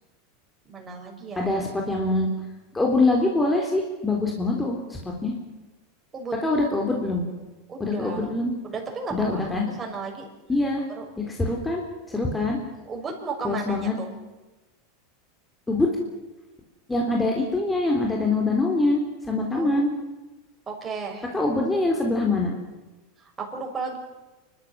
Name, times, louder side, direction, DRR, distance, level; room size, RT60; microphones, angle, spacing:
voice 1, 0.7-1.5 6.1-6.3 7.7-8.3 8.6-10.3 11.0-11.1 12.9-14.1 19.5-19.8 20.7-21.3 23.2-24.0, right 4 dB, 25° right, 0 dB, 6.5 m, -34 dB
voice 2, 1.4-2.3 2.7-4.8 5.0-5.3 6.4-7.2 7.8-8.5 9.1-9.7 10.5-10.8 11.3-12.6 13.4-14.0 15.7-15.9 16.9-19.0 19.3-19.9 21.3-22.5, left 2 dB, 10° left, 0 dB, 3.7 m, -24 dB
29.0 x 13.0 x 7.5 m, 1.1 s
hypercardioid pair, 100°, 0 cm